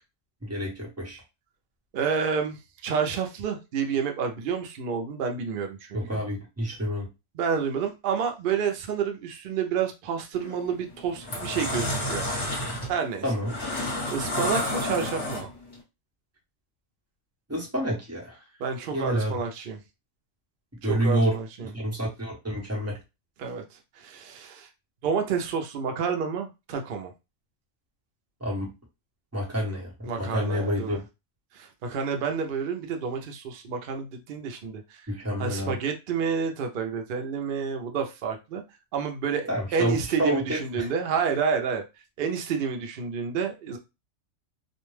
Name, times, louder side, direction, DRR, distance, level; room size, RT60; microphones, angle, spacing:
voice 1, 0.4-1.2 5.9-7.1 13.2-13.6 17.5-18.4 18.9-19.3 20.8-21.3 21.6-23.0 28.4-28.7 29.3-31.0 35.1-35.7 39.5-40.9, equal, 15° right, -3 dB, 0.8 m, -28 dB
voice 2, 1.9-6.2 7.3-12.3 12.9-13.2 14.1-15.5 18.6-19.8 20.8-21.7 23.4-24.7 25.0-27.1 30.1-31.0 31.5-35.1 35.4-38.6 38.9-41.8 42.2-43.8, right 6 dB, 60° right, 4 dB, 0.6 m, -29 dB
sound 1, 10.3-10.6 11.1-15.7, left 1 dB, 20° left, 1.0 m, -30 dB
2.4 x 2.1 x 3.1 m, 0.25 s
omnidirectional pair, 1.3 m